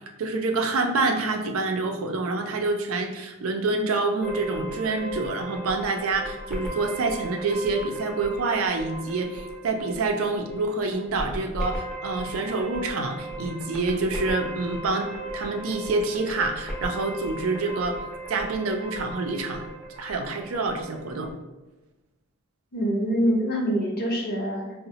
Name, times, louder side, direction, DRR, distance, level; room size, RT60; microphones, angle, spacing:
voice 1, 0.2-18.0 18.3-19.6 20.0-21.3, right 3 dB, 85° right, 4 dB, 0.4 m, -27 dB
sound 1, 4.2-21.3, right 1 dB, ahead, 0.5 m, -37 dB
voice 2, 22.7-24.9, equal, 50° left, -1 dB, 0.6 m, -25 dB
3.9 x 2.1 x 2.7 m, 1.1 s
head